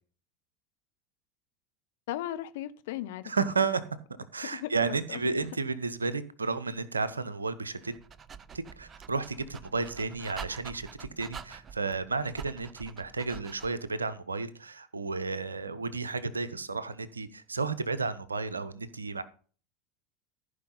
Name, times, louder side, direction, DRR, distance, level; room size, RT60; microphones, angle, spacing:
voice 1, 2.1-3.5 4.5-5.2, left 13 dB, 60° left, 0.7 m, -37 dB
voice 2, 3.2-3.8 4.3-7.9 8.5-19.2, right 4 dB, 85° right, 0.7 m, -32 dB
Dog, 7.8-13.9, right 6 dB, 30° right, 0.5 m, -46 dB
15.0 x 5.0 x 4.0 m
figure-of-eight pair, 80°, 0 cm